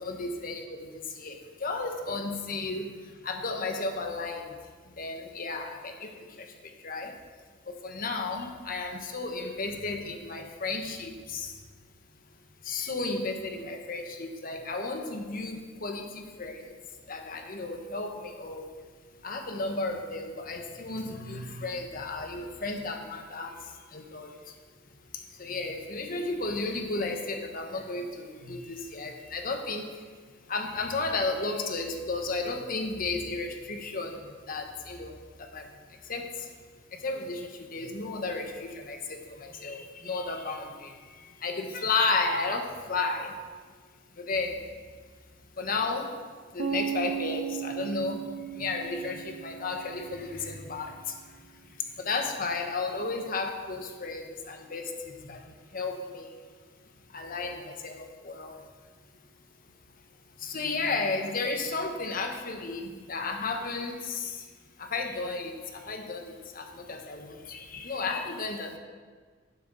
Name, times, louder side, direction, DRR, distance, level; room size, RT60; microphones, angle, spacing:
voice 1, 0.1-4.6 5.0-6.6 6.8-7.2 7.7-11.6 12.6-16.8 17.1-18.7 19.2-24.5 25.1-30.0 30.5-36.5 36.9-43.4 44.1-44.7 45.6-46.2 46.5-48.2 48.5-56.4 57.1-58.7 60.4-64.5 64.8-68.8, left 3 dB, 50° left, 4 dB, 1.2 m, -33 dB
sound 1, 46.6-50.5, right 9 dB, 85° right, 0.8 m, -36 dB
10.5 x 10.5 x 4.1 m, 1.5 s
head